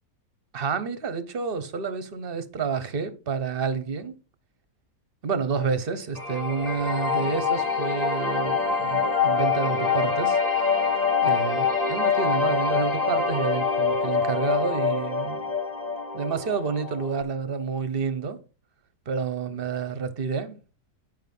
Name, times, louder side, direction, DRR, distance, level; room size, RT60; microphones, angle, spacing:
voice 1, 0.5-4.2 5.2-10.7 11.2-15.5 16.1-18.4 19.1-20.6, right 5 dB, 40° right, 1.0 m, -29 dB
sound 1, 6.2-17.2, left 5 dB, 25° left, 1.2 m, -25 dB
10.0 x 5.4 x 5.4 m
omnidirectional pair, 1.8 m